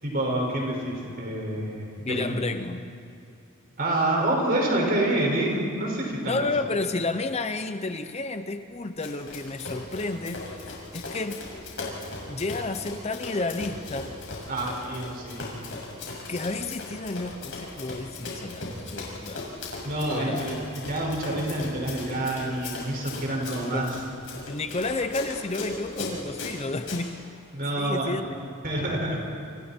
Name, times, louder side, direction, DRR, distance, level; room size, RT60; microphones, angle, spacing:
voice 1, 0.0-2.4 3.8-6.4 14.5-15.5 19.8-24.0 27.5-28.2 28.6-29.2, right 1 dB, 40° right, -1 dB, 5.7 m, -27 dB
voice 2, 2.0-2.8 6.2-11.4 12.3-14.2 16.1-19.5 20.1-20.5 23.7-23.9 24.5-27.3 27.8-28.5, left 3 dB, 30° left, 9 dB, 0.7 m, -31 dB
Run, 9.0-27.0, left 3 dB, 60° left, 6.9 m, -38 dB
30.0 x 28.5 x 4.5 m, 2.3 s
head